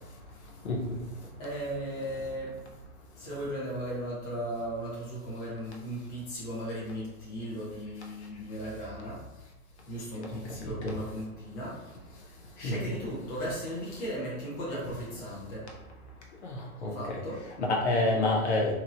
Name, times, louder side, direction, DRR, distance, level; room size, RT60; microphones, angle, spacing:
voice 1, 0.6-1.0 10.2-10.3 10.6-11.0 12.6-12.7 16.4-17.2 17.6-18.7, left 2 dB, 45° left, 0 dB, 0.7 m, -28 dB
voice 2, 1.4-2.5 3.2-9.2 9.9-11.8 12.6-15.7 16.9-17.4, equal, 25° left, -8 dB, 0.9 m, -36 dB
2.9 x 2.7 x 2.5 m, 1.0 s
hypercardioid pair, 160°, 46 cm